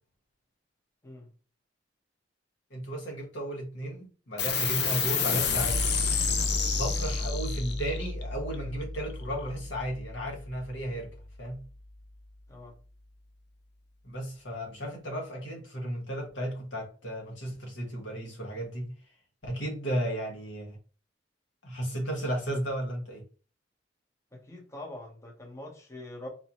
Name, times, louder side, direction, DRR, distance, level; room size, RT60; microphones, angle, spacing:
voice 1, 2.7-5.8 6.8-11.1 11.4-11.6 14.0-18.9 19.4-20.8 21.6-23.2, right 1 dB, 85° left, 1.3 m, -34 dB
sound 1, 4.4-11.3, left 4 dB, 60° left, 0.6 m, -30 dB
voice 2, 24.3-26.3, left 1 dB, 15° left, 0.8 m, -44 dB
4.1 x 2.7 x 2.9 m
head